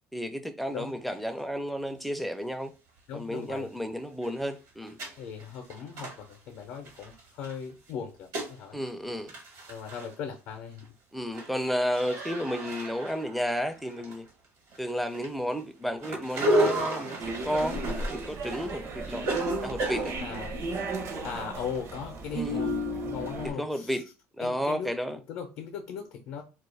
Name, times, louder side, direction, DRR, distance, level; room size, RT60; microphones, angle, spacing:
voice 1, 0.1-2.7 3.1-5.0 8.7-9.3 11.1-14.3 14.8-20.2 22.3-22.7 23.6-24.0 24.4-25.2, equal, ahead, 0.4 m, -32 dB
sound 1, 1.1-1.2 1.7-1.8 3.1-3.2 3.5-3.6 4.0-7.5 7.9-8.6 8.9-9.0 9.1-10.1 10.5-10.9 11.2-14.4 14.7-20.5, right 1 dB, 75° right, 1.1 m, -33 dB
voice 2, 3.1-3.7 5.2-8.8 9.7-10.8 20.2-20.5 21.2-24.0 24.4-26.4, left 7 dB, 70° left, 0.6 m, -39 dB
sound 2, 17.2-23.5, right 1 dB, 50° right, 0.6 m, -34 dB
2.3 x 2.1 x 3.2 m
supercardioid pair, 100°, 6 cm